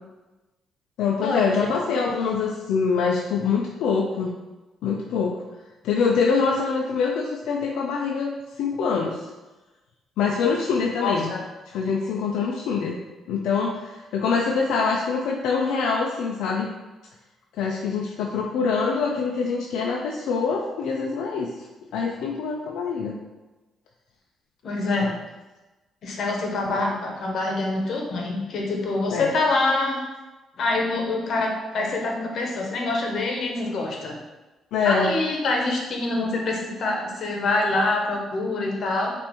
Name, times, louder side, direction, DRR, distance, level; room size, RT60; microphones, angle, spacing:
voice 1, 1.0-4.3 4.8-5.4 5.8-9.3 10.2-11.3 11.7-13.0 13.3-16.7 17.6-21.5 21.9-23.1 24.8-25.1 26.7-26.8 29.1-29.3 34.7-35.1, left 5 dB, 85° left, -1 dB, 0.4 m, -24 dB
voice 2, 11.0-11.4 24.6-25.1 26.0-30.0 30.6-34.2 34.8-39.1, left 2 dB, 65° left, 0 dB, 0.9 m, -25 dB
5.3 x 2.5 x 3.0 m, 1.1 s
cardioid pair, 90°, 0 cm